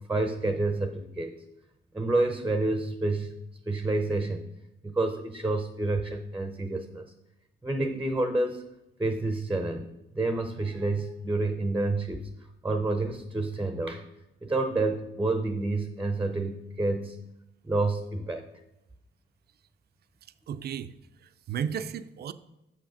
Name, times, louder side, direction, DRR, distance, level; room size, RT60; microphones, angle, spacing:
voice 1, 0.1-1.4 1.9-3.3 3.7-4.5 4.8-7.1 7.6-8.6 9.0-9.8 10.1-12.3 12.6-14.0 14.4-17.2 17.6-18.5, right 2 dB, 10° right, 7 dB, 0.7 m, -28 dB
voice 2, 20.5-20.9 21.2-22.3, right 8 dB, 55° right, 13 dB, 0.5 m, -34 dB
6.6 x 6.1 x 5.0 m, 0.92 s
cardioid pair, 90°, 20 cm